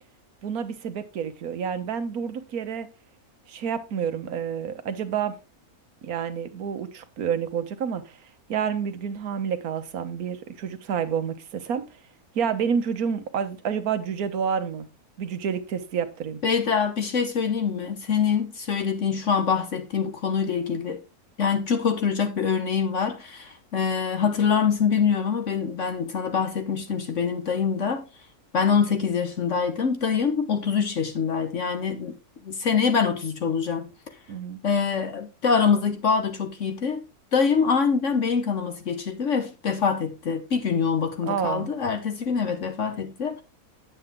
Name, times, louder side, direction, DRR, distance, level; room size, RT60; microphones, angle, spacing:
voice 1, 0.4-2.9 3.5-5.4 6.0-8.2 8.5-11.8 12.3-14.9 15.2-16.4 34.3-34.6 41.3-41.7, right 7 dB, 75° right, 1.5 m, -29 dB
voice 2, 16.4-21.0 21.4-28.0 28.5-32.1 32.4-33.9 34.6-37.0 37.3-43.4, left 6 dB, 55° left, 1.3 m, -24 dB
9.3 x 7.8 x 3.6 m
omnidirectional pair, 1.6 m